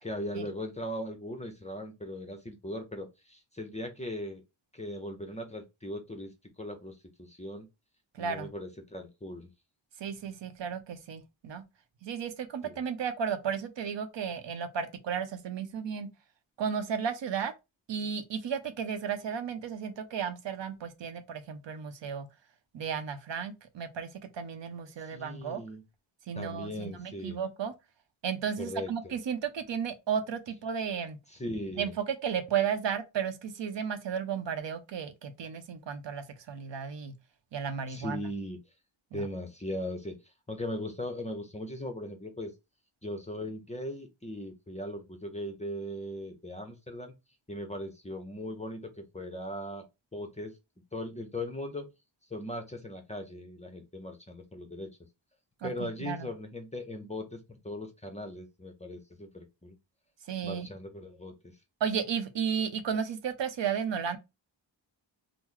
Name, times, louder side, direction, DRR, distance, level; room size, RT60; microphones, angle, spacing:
voice 1, 0.0-4.4 4.7-6.3 6.6-7.7 8.2-9.5 12.6-12.8 25.0-25.8 26.3-27.4 28.6-29.1 31.3-31.9 37.9-38.6 39.1-40.2 40.5-42.5 43.0-47.1 47.5-49.8 50.1-50.6 50.9-51.9 52.3-54.9 55.6-59.7 60.4-61.5, left 1 dB, 15° left, 0.5 m, -39 dB
voice 2, 10.0-11.6 12.0-16.1 16.6-17.5 17.9-22.3 22.7-25.6 26.3-27.7 28.2-31.2 31.7-37.1 37.5-38.2 39.1-39.3 55.6-56.3 60.3-60.7 61.8-64.2, right 7 dB, 70° right, 0.7 m, -34 dB
3.0 x 2.0 x 3.7 m
wide cardioid pair, 145°, 46 cm